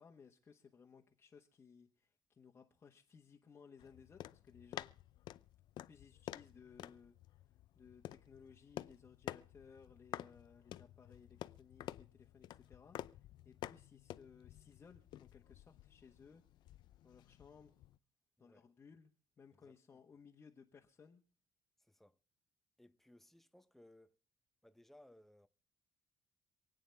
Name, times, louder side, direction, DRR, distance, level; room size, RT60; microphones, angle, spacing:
voice 1, 0.0-4.9 5.9-7.2 7.7-16.4 17.0-17.8 18.4-21.2, left 6 dB, 25° left, 1.3 m, -61 dB
sound 1, 3.8-18.0, left 13 dB, 60° left, 0.6 m, -51 dB
voice 2, 18.4-18.7 19.5-20.0 21.8-22.2 22.8-24.2 24.6-25.5, left 1 dB, 5° left, 0.8 m, -64 dB
27.0 x 9.2 x 3.4 m
cardioid pair, 145°, 9 cm